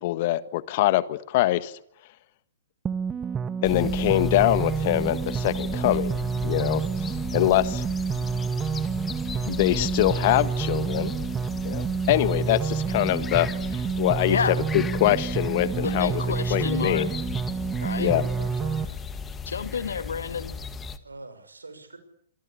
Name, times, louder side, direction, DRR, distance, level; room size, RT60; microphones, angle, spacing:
voice 1, 0.0-1.7 3.6-6.2 6.4-7.9 9.5-11.1 11.6-16.2 16.5-17.1 18.0-18.3, left 15 dB, 40° left, 15 dB, 1.5 m, -24 dB
sound 1, 2.9-18.9, right 6 dB, 15° right, 1.2 m, -28 dB
sound 2, 3.6-21.0, left 6 dB, 15° left, 1.8 m, -37 dB
voice 2, 14.3-14.6 15.8-17.1 17.8-18.1 19.5-20.6, left 6 dB, 65° left, 11 dB, 2.3 m, -30 dB
voice 3, 17.8-19.0 21.0-22.0, right 3 dB, 80° right, 11 dB, 6.2 m, -43 dB
26.5 x 25.5 x 8.5 m, 0.69 s
figure-of-eight pair, 115°, 0 cm